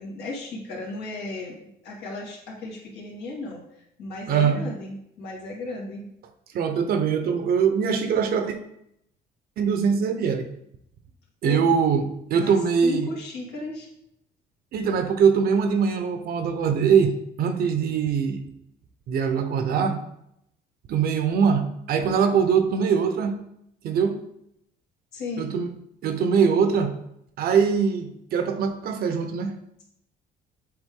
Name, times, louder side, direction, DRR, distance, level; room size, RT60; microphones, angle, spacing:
voice 1, 0.0-1.6 1.8-6.1 11.4-11.7 12.3-12.6 12.8-13.9 25.1-25.5, left 2 dB, 80° left, -3 dB, 2.0 m, -35 dB
voice 2, 4.3-4.6 6.5-8.5 9.6-10.5 11.4-12.0 12.3-13.1 14.7-17.1 17.4-18.4 19.1-20.0 20.9-23.3 23.8-24.2 25.4-25.7 26.0-26.9 27.4-29.5, right 6 dB, 65° right, 8 dB, 0.8 m, -22 dB
7.8 x 3.6 x 3.7 m, 0.77 s
cardioid pair, 110°, 17 cm